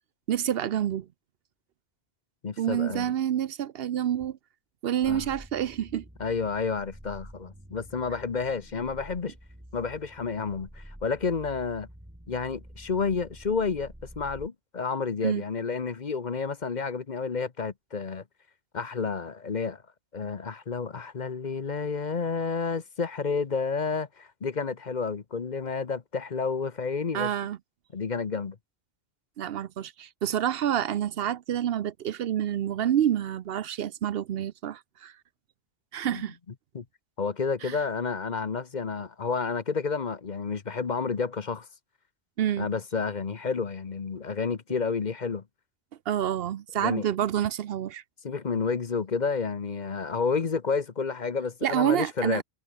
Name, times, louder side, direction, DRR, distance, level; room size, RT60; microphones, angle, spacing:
voice 1, 0.3-1.1 2.6-4.4 4.8-6.0 15.2-15.4 27.1-27.6 29.4-35.1 35.9-36.4 37.6-37.8 42.4-42.7 46.1-48.0 51.6-52.4, right 10 dB, 70° right, 0.8 m, -28 dB
voice 2, 2.4-3.1 5.0-5.3 6.2-9.3 9.7-11.9 12.3-18.2 18.7-19.8 20.1-27.3 27.9-28.6 36.1-36.2 36.7-36.8 37.2-41.7 42.6-45.4 46.8-47.1 48.2-52.4, left 5 dB, 45° left, 1.1 m, -30 dB
sound 1, 5.0-14.5, equal, 10° right, 4.8 m, -48 dB
omnidirectional pair, 1.1 m